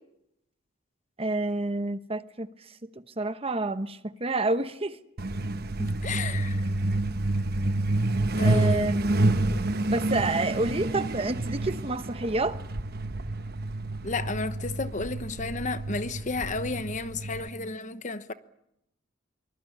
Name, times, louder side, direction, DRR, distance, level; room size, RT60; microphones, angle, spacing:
voice 1, 1.2-2.5 3.2-5.0 8.4-9.4 9.8-12.6, right 2 dB, 30° right, 1.0 m, -28 dB
Truck, 5.2-17.5, right 2 dB, 50° right, 1.1 m, -28 dB
voice 2, 5.8-6.6 8.4-8.9 14.0-18.3, left 3 dB, 40° left, 1.0 m, -32 dB
24.0 x 20.5 x 9.8 m
head